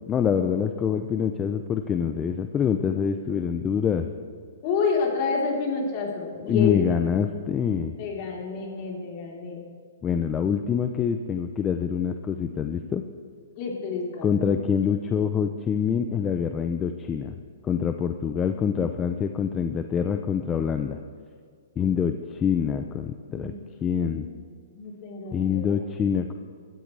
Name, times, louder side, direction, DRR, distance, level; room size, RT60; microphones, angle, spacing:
voice 1, 0.1-4.1 6.5-7.9 10.0-13.0 14.2-17.3 17.6-21.0 21.8-23.5 23.8-24.3 25.3-26.3, left 7 dB, 20° left, 7 dB, 0.6 m, -25 dB
voice 2, 4.6-6.9 8.0-9.6 13.6-14.5 23.3-23.6 23.9-24.3 24.7-25.8, left 5 dB, 40° left, -2 dB, 3.6 m, -29 dB
23.0 x 13.5 x 3.3 m, 2.1 s
hypercardioid pair, 135°, 0 cm